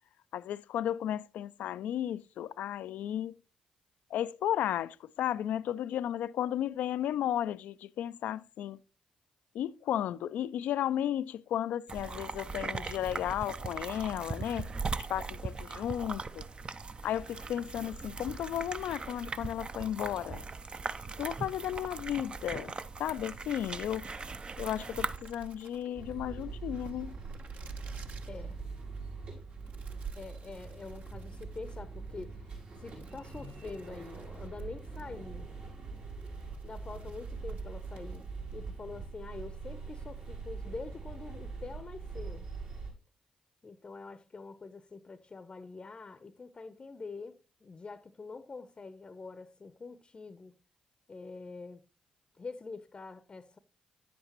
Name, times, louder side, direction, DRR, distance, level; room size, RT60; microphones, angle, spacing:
voice 1, 0.3-3.4 4.1-8.8 9.5-14.7 15.0-16.4 17.0-20.5 21.2-22.7 23.0-24.2 24.6-27.1, left 11 dB, 70° left, 0.3 m, -34 dB
sound 1, 11.9-25.2, right 4 dB, 35° right, 0.5 m, -39 dB
sound 2, 23.8-38.6, right 5 dB, 55° right, 1.0 m, -51 dB
sound 3, 25.9-42.9, right 4 dB, 75° right, 5.4 m, -43 dB
voice 2, 28.3-28.6 30.1-35.5 36.6-42.5 43.6-50.6 51.1-51.8 52.4-53.6, left 4 dB, 35° left, 0.7 m, -45 dB
10.0 x 8.1 x 2.9 m
hypercardioid pair, 40°, 3 cm